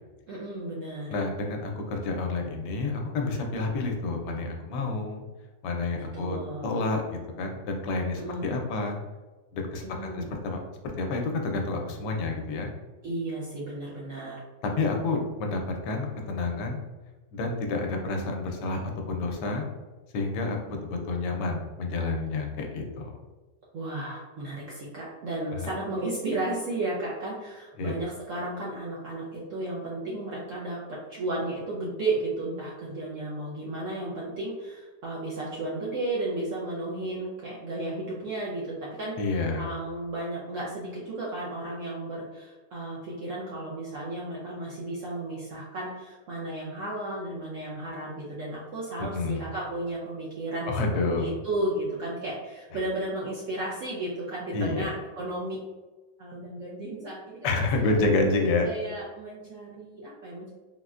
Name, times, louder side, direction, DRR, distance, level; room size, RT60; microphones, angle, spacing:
voice 1, 0.3-1.1 6.0-6.8 8.1-8.5 9.8-10.3 13.0-14.4 23.7-30.8 31.1-38.6 39.0-39.2 39.6-50.7 51.1-55.6 56.2-57.5 57.8-58.0 58.6-60.5, right 2 dB, 70° right, -5 dB, 0.7 m, -34 dB
voice 2, 1.1-5.2 5.6-9.0 9.5-9.8 10.1-10.6 11.0-12.7 14.6-16.8 17.3-18.8 19.1-19.7 20.1-23.2 25.5-25.7 27.8-27.9 39.2-39.7 49.0-49.4 50.7-51.3 54.5-54.9 57.4-58.7, left 3 dB, 80° left, 2 dB, 1.2 m, -29 dB
3.8 x 2.1 x 2.3 m, 1.2 s
omnidirectional pair, 1.9 m